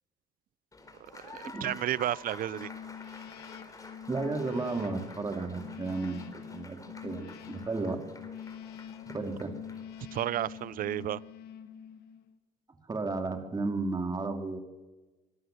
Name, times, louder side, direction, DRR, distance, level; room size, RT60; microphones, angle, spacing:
Applause, 0.7-11.1, left 3 dB, 20° left, 4.4 m, -50 dB
voice 1, 1.1-2.7 10.1-11.2, right 12 dB, 55° right, 22 dB, 0.6 m, -32 dB
sound 1, 2.5-12.4, left 8 dB, 70° left, 1.8 m, -45 dB
voice 2, 4.1-6.8 7.0-8.0 9.1-9.6 12.9-14.6, right 3 dB, 20° right, 5 dB, 3.0 m, -33 dB
25.0 x 14.0 x 7.9 m, 1.2 s
cardioid pair, 110°, 17 cm